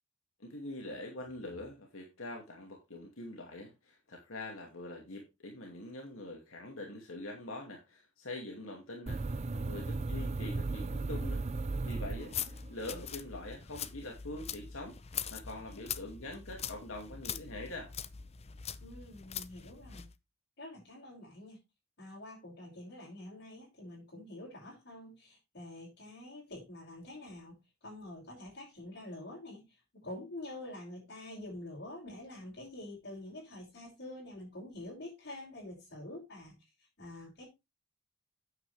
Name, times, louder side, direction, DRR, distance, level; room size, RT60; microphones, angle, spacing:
voice 1, 0.4-11.4 11.9-15.0 15.3-17.9, left 2 dB, 85° left, 1 dB, 2.3 m, -44 dB
sound 1, 9.1-12.8, right 3 dB, 35° right, 0.4 m, -36 dB
sound 2, 12.1-20.1, left 8 dB, 30° left, 0.6 m, -42 dB
voice 2, 18.8-20.0 20.6-21.6 22.0-37.4, left 1 dB, 55° left, -8 dB, 6.2 m, -47 dB
9.3 x 8.5 x 3.4 m, 0.23 s
head